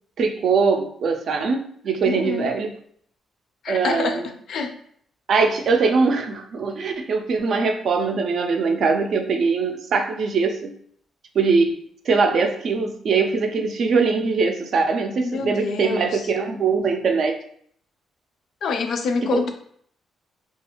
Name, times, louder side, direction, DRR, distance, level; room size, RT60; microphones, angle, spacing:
voice 1, 0.2-2.8 3.7-4.3 5.3-10.7 11.3-11.8 12.1-17.4 19.3-19.4, right 4 dB, 60° right, 5 dB, 0.4 m, -22 dB
voice 2, 2.0-2.5 3.6-4.2 4.5-4.7 15.2-16.2 18.6-19.5, left 4 dB, 65° left, 6 dB, 0.4 m, -26 dB
2.4 x 2.3 x 2.9 m, 0.62 s
cardioid pair, 110°, 0 cm